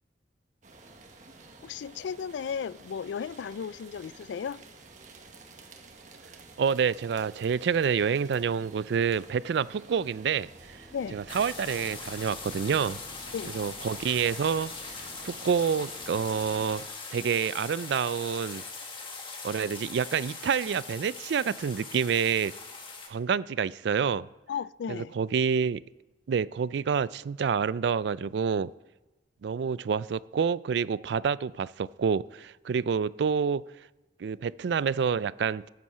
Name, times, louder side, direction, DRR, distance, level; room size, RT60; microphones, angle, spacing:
sound 1, 0.6-16.9, right 3 dB, 40° right, 1.4 m, -51 dB
voice 1, 1.6-4.6 10.9-11.2 13.3-13.5 24.5-25.1, left 7 dB, 75° left, 0.3 m, -35 dB
voice 2, 6.6-10.8 11.1-13.0 13.5-14.7 15.2-16.8 17.1-18.6 19.4-22.5 23.1-24.3 24.9-25.8 26.3-28.7 29.4-33.6 34.2-35.7, right 6 dB, 70° right, 0.3 m, -28 dB
sound 2, 10.3-16.4, equal, 50° left, 5.0 m, -55 dB
sound 3, 11.3-23.1, left 4 dB, 30° left, 1.6 m, -41 dB
14.0 x 7.8 x 5.6 m
head